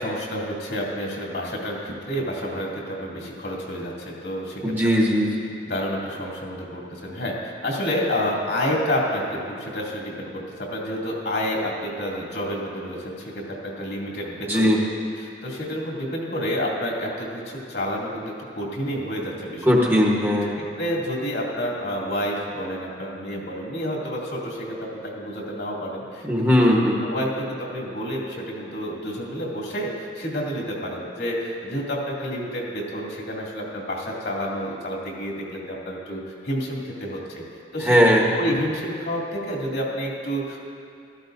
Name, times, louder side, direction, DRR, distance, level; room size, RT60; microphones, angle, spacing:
voice 1, 0.0-4.6 5.7-7.3 7.6-14.8 15.4-19.7 20.8-26.7 27.0-37.4 37.7-38.0 38.3-40.6, equal, 75° left, -4 dB, 2.5 m, -29 dB
voice 2, 4.6-5.5 14.4-14.8 19.6-20.6 26.2-27.0 37.8-38.2, equal, 10° right, -3 dB, 1.2 m, -19 dB
15.5 x 13.5 x 2.7 m, 2.4 s
head